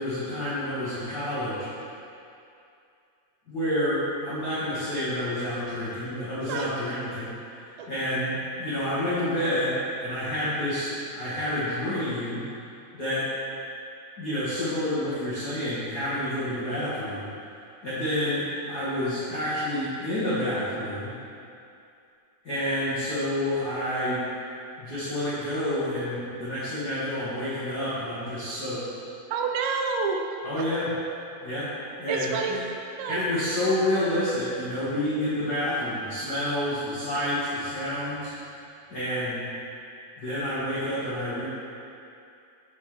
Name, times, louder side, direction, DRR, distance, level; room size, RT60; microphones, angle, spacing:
voice 1, 0.0-1.7 3.5-7.3 7.7-12.4 12.9-13.3 14.2-17.3 17.8-21.1 22.4-24.2 24.8-28.8 30.4-30.9 31.4-31.7 32.0-32.6 33.1-38.3 38.9-39.4 40.2-41.4, left 1 dB, 75° left, -13 dB, 0.9 m, -29 dB
voice 2, 29.3-30.7 32.1-32.6 33.0-33.2, right 5 dB, 85° right, 3 dB, 2.4 m, -29 dB
8.0 x 4.8 x 3.1 m, 2.6 s
omnidirectional pair, 4.2 m